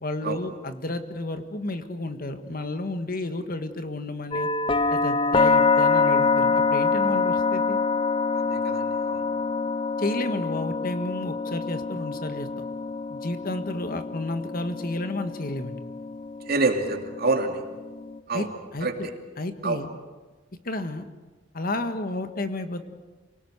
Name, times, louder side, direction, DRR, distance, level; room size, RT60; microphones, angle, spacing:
voice 1, 0.0-4.5 4.9-7.8 10.0-12.5 13.1-15.8 18.3-19.1 19.4-19.9 20.6-21.0 21.5-22.9, left 2 dB, 50° left, 9 dB, 1.6 m, -31 dB
sound 1, 4.3-18.2, left 4 dB, 30° left, 0.7 m, -26 dB
voice 2, 8.5-9.2 16.4-17.6 18.3-18.5 18.8-18.9 19.6-19.8, right 3 dB, 55° right, 4 dB, 2.7 m, -26 dB
27.5 x 19.0 x 8.1 m, 1.3 s
head